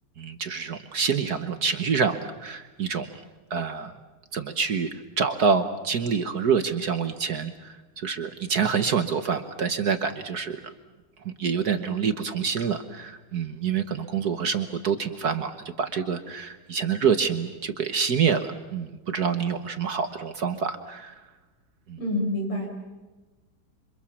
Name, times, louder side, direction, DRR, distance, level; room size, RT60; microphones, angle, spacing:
voice 1, 0.2-2.2 2.4-3.1 3.5-3.9 4.3-4.9 5.2-10.7 11.2-21.1 21.9-22.0, right 6 dB, 50° right, 9 dB, 1.4 m, -27 dB
voice 2, 22.0-22.7, left 1 dB, 80° left, 1 dB, 7.6 m, -27 dB
27.5 x 25.5 x 7.2 m, 1.2 s
omnidirectional pair, 2.4 m